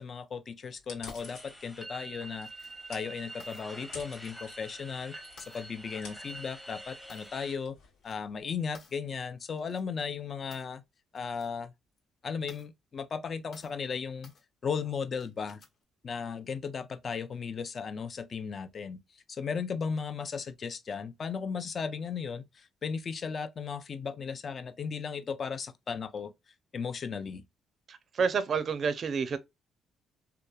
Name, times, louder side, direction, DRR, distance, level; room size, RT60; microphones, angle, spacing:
voice 1, 0.0-7.7 8.0-10.8 11.1-11.7 12.2-14.3 14.6-15.6 16.0-19.0 19.3-26.3 26.7-27.4, left 6 dB, 45° left, 0.5 m, -36 dB
sound 1, 0.8-8.5, left 4 dB, 85° left, 1.3 m, -52 dB
sound 2, 1.1-1.3 2.4-2.8 3.4-3.7 4.4-4.7 5.4-5.7 6.3-6.4 7.1-7.5 7.8-8.1 8.7-9.0 9.6-9.8 10.5-10.8 11.2-11.5 11.9-12.0 12.5-12.7 13.5-13.8 14.2-14.4 15.2-15.8, left 4 dB, 60° left, 1.1 m, -56 dB
sound 3, 1.2-7.6, right 1 dB, 5° left, 0.8 m, -46 dB
voice 2, 27.9-29.4, right 6 dB, 50° right, 0.4 m, -29 dB
2.9 x 2.2 x 2.2 m
cardioid pair, 90°, 0 cm